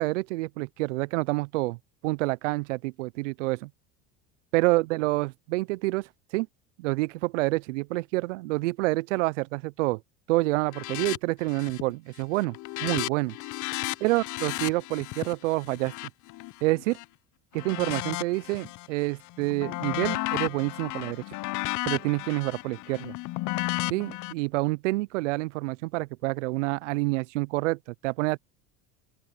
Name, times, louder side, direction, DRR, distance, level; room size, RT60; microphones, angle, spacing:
voice 1, 0.0-1.8 2.0-3.7 4.5-6.1 6.3-6.5 6.8-10.0 10.3-12.6 12.8-13.4 14.0-15.9 16.6-17.0 17.5-21.2 21.9-23.1 23.9-28.4, right 22 dB, 90° right, 0.5 m, -28 dB
sound 1, 10.7-11.2 11.5-11.9 12.2-17.0 17.5-18.9 19.2-24.3, left 20 dB, 55° left, 0.8 m, -34 dB
open air
supercardioid pair, 100°, 36 cm